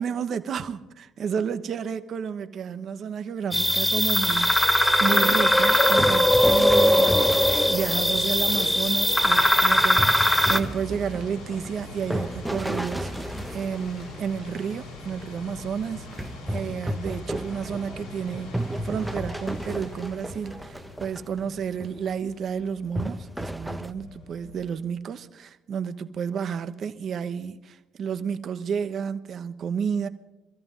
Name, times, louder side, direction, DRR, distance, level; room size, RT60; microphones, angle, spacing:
voice 1, 0.0-4.5 5.0-30.1, right 7 dB, 55° right, 0.9 m, -31 dB
sound 1, 3.5-10.6, left 1 dB, 10° left, 1.4 m, -20 dB
sound 2, 5.7-8.4 10.0-14.6 16.1-21.4 21.8-22.0 23.0-23.9, right 1 dB, 10° right, 0.8 m, -33 dB
sound 3, 8.2-24.9, left 3 dB, 85° left, 6.5 m, -43 dB
25.0 x 14.0 x 3.7 m
hypercardioid pair, 55°, 0 cm